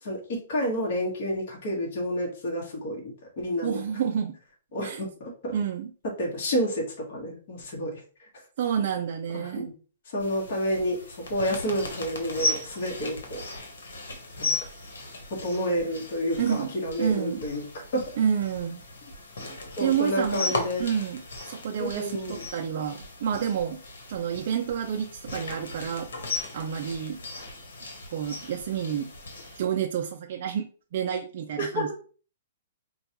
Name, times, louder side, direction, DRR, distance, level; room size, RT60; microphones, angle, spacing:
voice 1, 0.0-3.8 4.7-5.5 6.2-8.0 9.3-9.7 10.1-13.4 14.4-14.5 15.3-17.6 17.9-18.0 19.8-20.8 21.8-22.4 31.6-31.9, equal, 55° left, -2 dB, 1.3 m, -30 dB
voice 2, 3.6-4.4 4.8-5.0 5.5-5.9 8.6-9.7 16.4-16.7 17.0-17.4 18.2-18.8 19.8-21.2 21.5-23.8 24.1-26.1 26.5-27.2 28.1-29.1 29.5-31.9, right 8 dB, 50° right, 2 dB, 0.4 m, -29 dB
sound 1, 10.2-29.6, left 2 dB, 90° left, 1.2 m, -37 dB
4.3 x 2.3 x 2.9 m, 0.38 s
hypercardioid pair, 155°, 0 cm